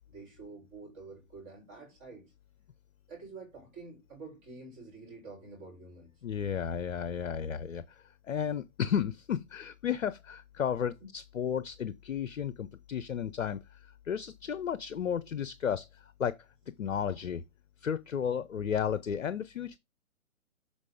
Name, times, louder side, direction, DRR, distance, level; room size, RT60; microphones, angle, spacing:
voice 1, 0.1-2.3 3.1-6.1, right 3 dB, 20° right, 3.5 m, -48 dB
voice 2, 6.2-16.3 16.8-17.4 17.8-19.8, left 8 dB, 60° left, 0.7 m, -33 dB
7.4 x 4.2 x 4.9 m
figure-of-eight pair, 145°, 42 cm